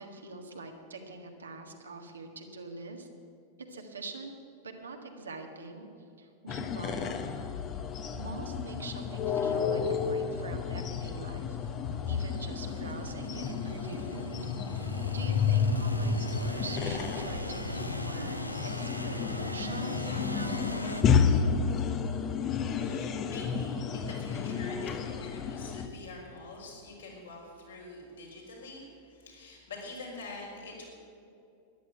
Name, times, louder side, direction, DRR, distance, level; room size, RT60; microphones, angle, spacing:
voice 1, 0.0-3.1 3.7-4.3 4.6-5.9 6.2-7.6 8.2-11.6 12.1-20.7, right 3 dB, 70° right, 4 dB, 1.7 m, -44 dB
sound 1, 6.5-25.9, left 6 dB, 30° left, 1.0 m, -31 dB
sound 2, 8.8-8.9 9.6-9.7 10.3-10.9 11.6-21.0, equal, 90° left, 0.8 m, -39 dB
voice 2, 22.6-30.9, left 2 dB, 70° left, -3 dB, 4.7 m, -45 dB
13.5 x 11.0 x 7.9 m, 2.7 s
figure-of-eight pair, 90°, 0 cm